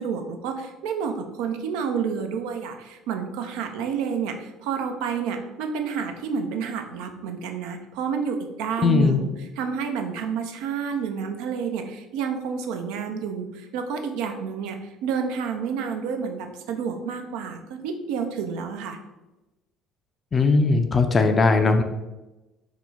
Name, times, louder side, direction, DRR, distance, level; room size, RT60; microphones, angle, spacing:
voice 1, 0.0-19.0, right 6 dB, 75° right, 5 dB, 0.3 m, -29 dB
voice 2, 8.8-9.2 20.3-21.8, left 4 dB, 35° left, 6 dB, 0.4 m, -19 dB
2.9 x 2.0 x 3.4 m, 1.0 s
hypercardioid pair, 60°, 0 cm